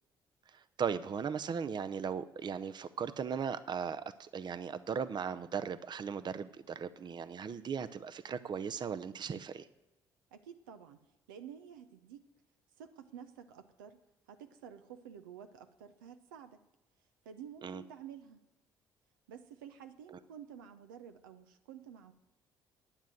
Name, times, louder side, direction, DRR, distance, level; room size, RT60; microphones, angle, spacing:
voice 1, 0.8-9.7 17.6-17.8, right 7 dB, 45° right, 13 dB, 0.7 m, -37 dB
voice 2, 10.3-11.0 11.3-12.2 12.8-14.0 14.3-16.6 17.2-18.4 19.3-22.1, right 8 dB, 90° right, 8 dB, 0.7 m, -51 dB
10.0 x 9.2 x 7.7 m, 1.0 s
hypercardioid pair, 50°, 11 cm